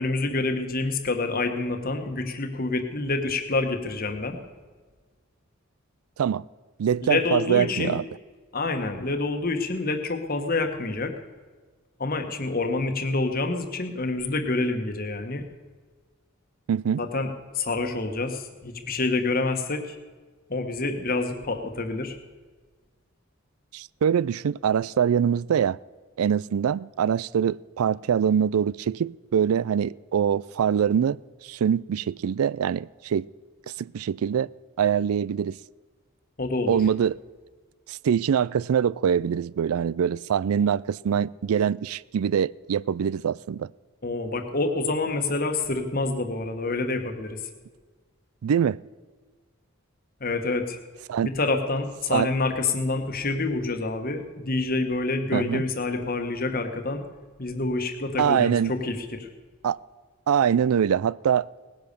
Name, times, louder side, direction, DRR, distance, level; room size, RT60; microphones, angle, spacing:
voice 1, 0.0-4.4 7.1-8.0 8.5-11.1 12.0-15.4 17.0-17.3 17.5-20.0 20.5-22.2 36.4-36.8 44.0-47.4 50.2-50.8 51.2-57.0 57.4-59.3, left 3 dB, 45° left, 1.4 m, -27 dB
voice 2, 6.8-8.0 16.7-17.0 23.7-25.8 26.2-33.3 33.8-34.5 34.8-35.6 36.7-37.2 37.9-43.7 48.4-48.8 51.1-51.3 52.1-52.3 55.3-55.6 58.2-58.7 59.6-59.8 60.3-61.5, right 8 dB, 90° right, 0.4 m, -24 dB
18.5 x 10.5 x 6.8 m
head